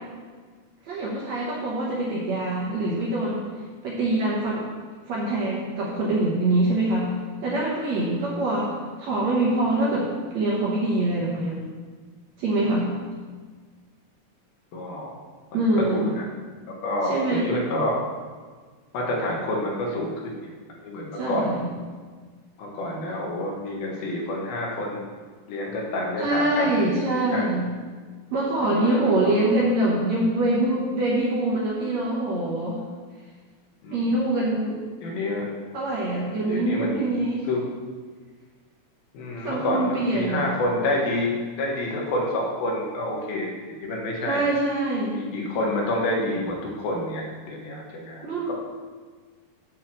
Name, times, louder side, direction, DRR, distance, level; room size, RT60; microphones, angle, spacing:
voice 1, 0.9-3.5 3.8-4.6 5.1-7.1 7.4-8.7 9.0-10.1 10.3-11.6 12.4-12.9 15.5-16.1 17.0-17.4 21.1-21.7 26.2-27.7 28.3-32.8 33.9-34.8 35.7-37.5 39.4-40.5 44.2-45.2 48.2-48.5, right 2 dB, 65° right, -5 dB, 1.8 m, -24 dB
voice 2, 14.7-15.1 15.5-15.6 15.9-16.3 16.7-18.0 18.9-20.5 20.8-21.5 22.6-25.0 25.5-27.5 28.6-29.5 33.8-34.1 35.0-35.5 36.4-37.1 37.4-37.6 39.1-44.4 45.1-48.5, left 1 dB, 80° left, -1 dB, 3.1 m, -28 dB
7.9 x 4.4 x 6.4 m, 1.5 s
omnidirectional pair, 4.3 m